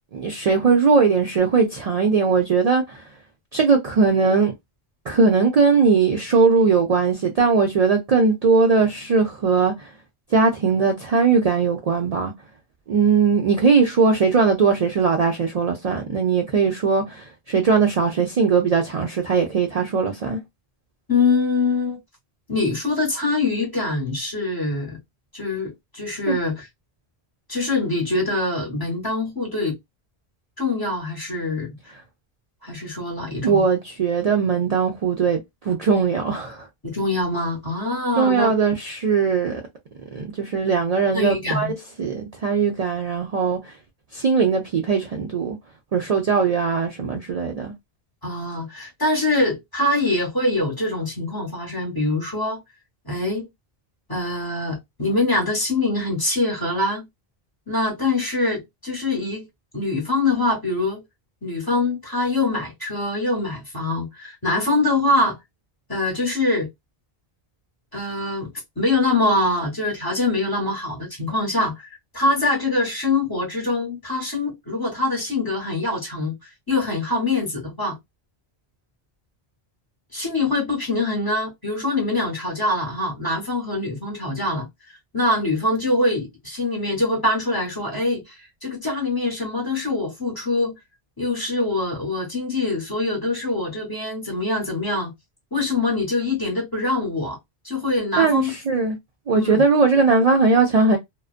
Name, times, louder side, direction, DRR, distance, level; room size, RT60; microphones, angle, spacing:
voice 1, 0.1-3.0 3.5-4.5 5.1-9.9 10.3-12.3 12.9-20.4 26.3-26.4 33.4-35.4 35.6-36.7 38.2-39.6 40.1-41.7 42.0-43.7 44.1-45.6 45.9-47.7 98.2-99.0 99.3-101.0, right 5 dB, 50° right, 0.5 m, -19 dB
voice 2, 21.1-22.0 22.5-25.0 25.3-26.7 27.5-29.8 30.6-31.8 32.6-33.6 36.8-38.5 41.1-41.7 48.2-52.6 53.0-53.5 54.1-57.1 57.7-59.5 59.7-61.0 61.4-65.4 65.9-66.7 67.9-78.0 80.1-84.7 85.1-90.7 91.2-95.1 95.5-97.4 97.6-98.5 99.3-99.6, left 2 dB, 25° left, 0.9 m, -24 dB
2.4 x 2.1 x 2.4 m
omnidirectional pair, 1.0 m